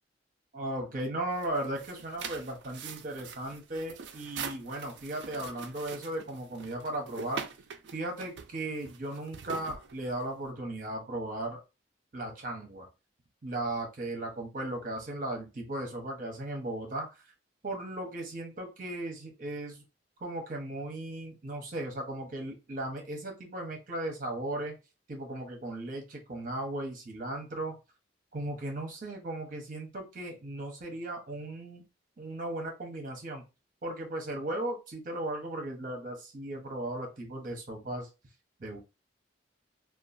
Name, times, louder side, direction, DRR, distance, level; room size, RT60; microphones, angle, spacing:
voice 1, 0.5-7.4 7.9-11.6 12.1-12.9 13.4-17.1 17.6-19.8 20.2-24.7 25.1-27.8 28.3-31.8 32.2-33.4 33.8-38.1 38.6-38.8, right 1 dB, 45° right, 2 dB, 0.8 m, -36 dB
sound 1, 1.3-10.5, right 6 dB, 65° right, 0.4 m, -43 dB
2.9 x 2.3 x 2.5 m, 0.28 s
head